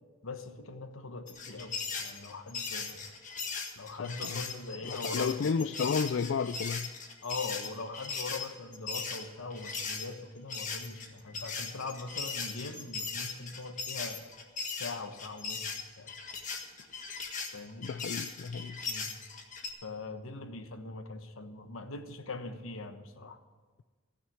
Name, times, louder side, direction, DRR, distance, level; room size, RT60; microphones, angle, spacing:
voice 1, 0.2-3.0 3.8-5.4 7.2-14.2 14.8-16.1 17.5-17.9 18.8-19.1 19.8-23.4, left 3 dB, 90° left, 8 dB, 1.1 m, -41 dB
sound 1, 1.3-10.1 10.5-19.7, left 5 dB, 40° left, 1.6 m, -38 dB
voice 2, 4.9-6.9 17.8-18.7, left 5 dB, 65° left, 12 dB, 0.3 m, -31 dB
16.0 x 6.6 x 9.3 m, 1.4 s
head